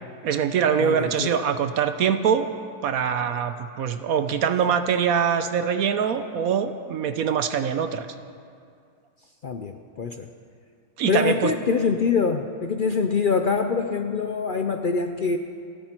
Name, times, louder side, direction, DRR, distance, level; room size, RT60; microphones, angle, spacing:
voice 1, 0.2-2.5 2.8-8.1 11.0-11.5, right 7 dB, 65° right, 9 dB, 1.1 m, -23 dB
voice 2, 0.8-1.4 9.4-10.3 11.1-15.4, left 5 dB, 75° left, 6 dB, 0.4 m, -24 dB
30.0 x 10.0 x 4.5 m, 2.3 s
omnidirectional pair, 1.7 m